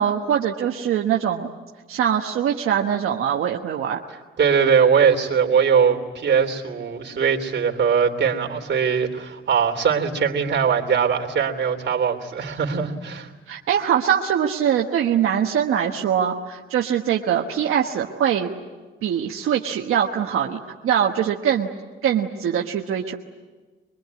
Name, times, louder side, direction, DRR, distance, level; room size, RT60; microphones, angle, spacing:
voice 1, 0.0-1.5 1.9-4.0 13.5-18.5 19.0-21.7 22.0-23.2, right 9 dB, 90° right, 1 dB, 1.3 m, -22 dB
voice 2, 4.4-13.3, right 6 dB, 55° right, 3 dB, 3.3 m, -21 dB
23.5 x 23.0 x 9.6 m, 1.3 s
cardioid pair, 80°, 21 cm